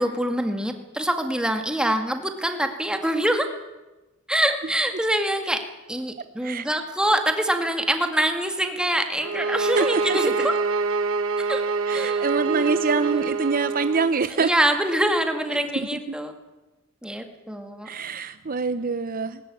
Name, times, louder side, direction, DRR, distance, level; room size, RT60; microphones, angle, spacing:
voice 1, 0.0-3.5 4.3-5.6 5.9-10.6 11.4-11.7 11.9-13.3 14.3-16.3 17.0-17.9, right 1 dB, 5° right, 6 dB, 2.0 m, -25 dB
sound 1, 9.2-14.1, right 4 dB, 70° right, 1.5 m, -25 dB
voice 2, 9.7-10.3 11.9-14.5 17.9-19.4, right 4 dB, 40° right, 12 dB, 0.8 m, -25 dB
20.0 x 20.0 x 9.7 m, 1.1 s
head